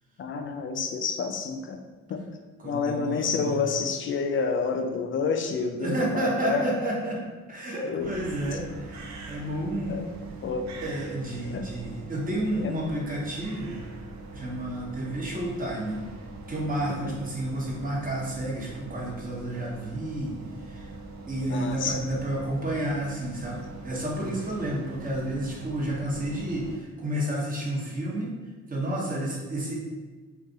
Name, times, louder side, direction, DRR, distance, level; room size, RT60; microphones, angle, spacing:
voice 1, 0.2-1.8 2.1-2.2 2.6-6.7 7.8-8.1 9.9-10.1 10.4-10.7 11.5-11.7 12.6-12.7 17.0-17.1 21.5-22.0, left 5 dB, 45° left, 5 dB, 0.4 m, -29 dB
voice 2, 2.6-3.6 5.8-7.2 7.5-9.0 9.3-10.0 10.8-13.8 14.3-16.0 16.5-20.4 20.6-20.9 21.3-28.3 28.7-29.7, right 1 dB, 30° right, -3 dB, 1.0 m, -30 dB
sound 1, 8.0-26.8, right 3 dB, 65° right, 0.5 m, -42 dB
2.5 x 2.4 x 3.8 m, 1.4 s
cardioid pair, 90°, 30 cm